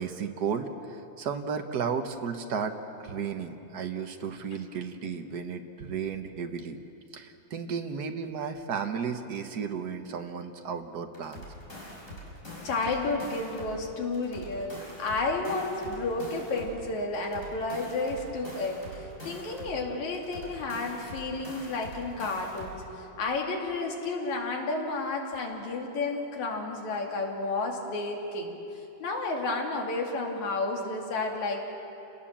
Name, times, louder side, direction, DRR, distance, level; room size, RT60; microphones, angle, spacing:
voice 1, 0.0-2.7 3.0-6.8 7.1-11.4, right 6 dB, 60° right, 5 dB, 1.0 m, -34 dB
sound 1, 11.1-13.8 14.1-16.8 17.1-19.8 20.1-22.8, equal, 25° left, 5.8 m, -44 dB
voice 2, 12.6-28.5 29.0-31.7, left 3 dB, 75° left, 0 dB, 3.8 m, -31 dB
29.5 x 18.5 x 7.3 m, 3.0 s
omnidirectional pair, 3.3 m